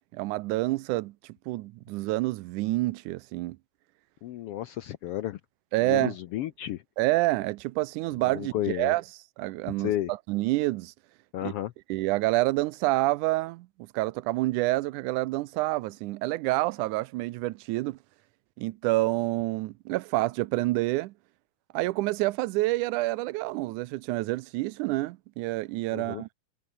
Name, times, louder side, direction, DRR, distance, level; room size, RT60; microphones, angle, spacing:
voice 1, 0.1-1.1 1.5-3.6 5.7-6.1 7.0-9.0 9.4-9.9 10.3-10.9 11.4-11.5 11.9-18.0 18.6-21.1 21.7-26.3, right 19 dB, 85° right, 2.1 m, -28 dB
voice 2, 4.2-5.4 5.8-6.8 8.2-8.9 9.7-10.1 11.3-11.7 25.9-26.2, left 13 dB, 80° left, 1.3 m, -32 dB
omnidirectional pair, 3.5 m